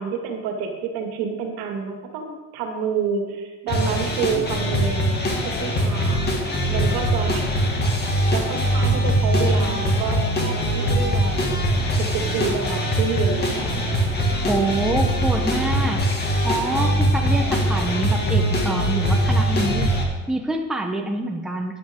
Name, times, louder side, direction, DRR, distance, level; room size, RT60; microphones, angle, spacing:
voice 1, 0.0-5.2 5.4-6.3 6.7-7.5 8.0-11.6 12.0-13.7, right 6 dB, 70° right, 3 dB, 2.3 m, -28 dB
sound 1, 3.7-20.0, equal, 25° left, 2.1 m, -22 dB
voice 2, 14.5-16.0 16.4-19.9 20.3-21.8, right 2 dB, ahead, 3 dB, 0.8 m, -26 dB
12.5 x 10.5 x 3.7 m, 1.3 s
cardioid pair, 130°, 38 cm